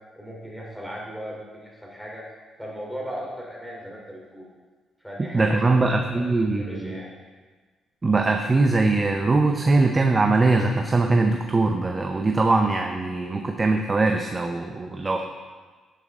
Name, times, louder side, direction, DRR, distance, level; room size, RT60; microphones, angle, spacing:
voice 1, 0.1-2.2 2.6-4.4 5.0-6.0 6.5-7.1, equal, ahead, -3 dB, 3.2 m, -37 dB
voice 2, 5.3-7.0 8.0-15.2, right 3 dB, 25° right, 4 dB, 0.7 m, -21 dB
11.0 x 9.1 x 3.7 m, 1.4 s
cardioid pair, 90°, 0 cm